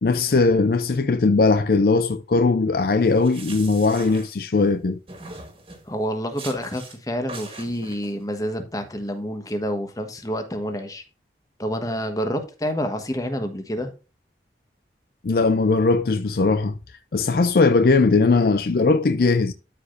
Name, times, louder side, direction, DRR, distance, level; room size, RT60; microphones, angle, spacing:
voice 1, 0.0-5.0 15.2-16.7 17.1-19.5, left 3 dB, 55° left, 0.4 m, -19 dB
sound 1, 3.0-4.7 5.1-5.9 6.4-7.0 7.3-8.1, right 3 dB, 30° right, 1.9 m, -41 dB
voice 2, 5.9-11.0 11.6-13.9, equal, 20° left, 1.2 m, -28 dB
13.0 x 5.0 x 2.6 m
head